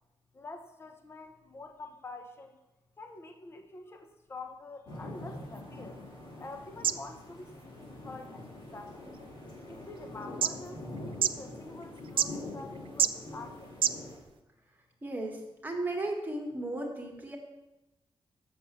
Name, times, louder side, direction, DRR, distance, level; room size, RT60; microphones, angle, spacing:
voice 1, 0.3-2.6 3.0-6.0 6.4-9.2 9.7-13.7, left 2 dB, 25° left, 5 dB, 0.8 m, -47 dB
sound 1, 4.9-14.2, left 2 dB, 60° left, 3.5 m, -44 dB
sound 2, 5.1-14.4, right 8 dB, 70° right, 0.4 m, -36 dB
voice 2, 15.0-17.4, right 2 dB, 20° right, 1 dB, 1.8 m, -35 dB
7.6 x 6.9 x 6.9 m, 0.99 s
wide cardioid pair, 145°, 9 cm